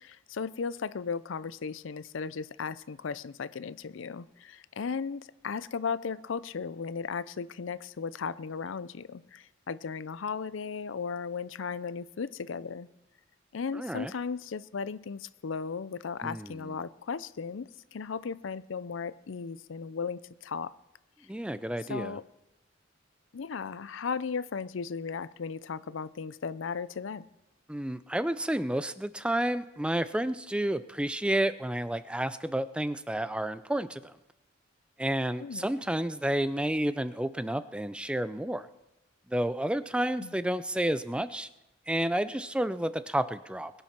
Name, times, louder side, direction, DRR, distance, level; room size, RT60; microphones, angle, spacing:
voice 1, 0.0-12.9 13.5-20.7 21.9-22.2 23.3-27.2 35.4-35.7 40.2-40.3, left 5 dB, 80° left, 17 dB, 0.5 m, -36 dB
voice 2, 13.7-14.1 16.2-16.8 21.3-22.2 27.7-34.1 35.0-38.7 39.3-41.5 41.9-43.7, right 1 dB, 5° right, 13 dB, 0.4 m, -30 dB
21.0 x 9.1 x 5.8 m, 0.96 s
head